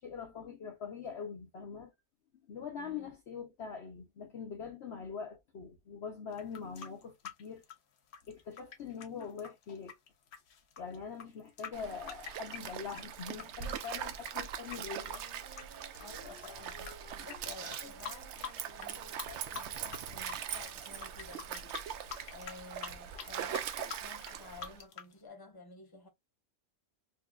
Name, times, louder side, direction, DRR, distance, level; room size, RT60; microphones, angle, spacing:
voice 1, 0.0-1.9 2.5-7.6 8.3-9.9 10.8-15.2, left 6 dB, 55° left, 0.8 m, -43 dB
voice 2, 2.8-3.1 16.0-16.9 17.2-18.4 18.8-21.8 22.3-26.1, left 4 dB, 20° left, 0.9 m, -52 dB
sound 1, 6.3-13.5 13.8-16.9 17.2-17.4 17.7-18.9 19.2-20.0 20.2-25.1, left 7 dB, 90° left, 1.3 m, -46 dB
Stream, 11.7-24.8, right 9 dB, 65° right, 0.8 m, -42 dB
Wind instrument woodwind instrument, 14.9-19.9, equal, 20° right, 0.9 m, -58 dB
4.4 x 2.6 x 2.3 m
omnidirectional pair, 1.5 m